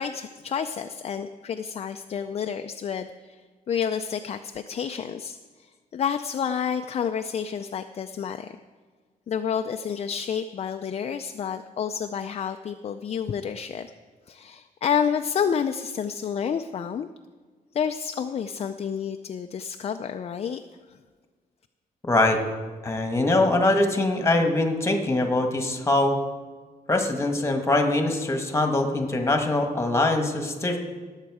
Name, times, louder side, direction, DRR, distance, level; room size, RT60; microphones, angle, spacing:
voice 1, 0.0-8.6 9.3-13.9 14.3-17.1 17.7-21.0, left 7 dB, 40° left, 7 dB, 0.4 m, -29 dB
voice 2, 22.0-22.4 22.8-26.2 26.9-30.8, left 2 dB, 20° left, 5 dB, 1.4 m, -23 dB
18.0 x 7.3 x 4.8 m, 1.5 s
wide cardioid pair, 130°, 16 cm